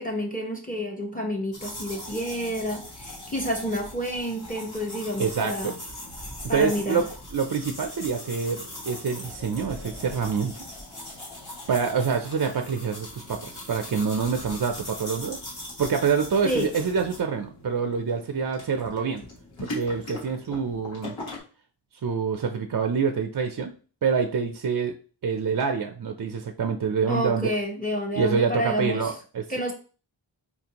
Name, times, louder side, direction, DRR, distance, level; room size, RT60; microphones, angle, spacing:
voice 1, 0.0-5.7 6.5-7.0 16.4-16.7 27.1-29.1 29.5-29.7, equal, 20° left, 1 dB, 0.9 m, -29 dB
sound 1, 1.5-21.4, left 1 dB, 80° left, 1.4 m, -40 dB
voice 2, 5.2-5.7 6.4-10.5 11.7-15.4 15.8-19.2 19.6-21.2 22.0-23.7 24.0-24.9 25.2-27.5 28.2-29.4, right 5 dB, 50° right, 5 dB, 0.4 m, -26 dB
4.1 x 2.5 x 2.8 m, 0.37 s
wide cardioid pair, 45°, 47 cm